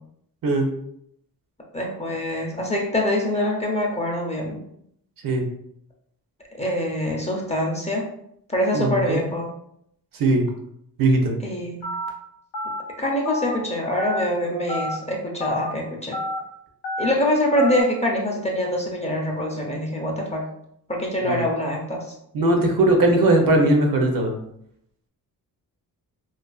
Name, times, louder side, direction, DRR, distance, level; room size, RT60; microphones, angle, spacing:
voice 1, 1.7-4.6 6.6-8.1 8.5-9.5 11.4-11.9 13.0-16.2 17.0-20.5 20.9-22.1, left 1 dB, 20° left, -1 dB, 0.5 m, -24 dB
voice 2, 8.7-9.2 10.1-10.4 11.0-11.3 21.2-21.4 22.3-24.3, right 2 dB, 65° right, 3 dB, 0.6 m, -19 dB
Telephone, 11.8-12.1 12.5-12.8 13.3-13.5 14.0-14.2 14.7-15.0 15.4-15.7 16.1-16.4 16.8-17.1 17.6-17.8, left 1 dB, 80° left, 0.6 m, -29 dB
2.4 x 2.3 x 2.3 m, 0.73 s
cardioid pair, 100°, 37 cm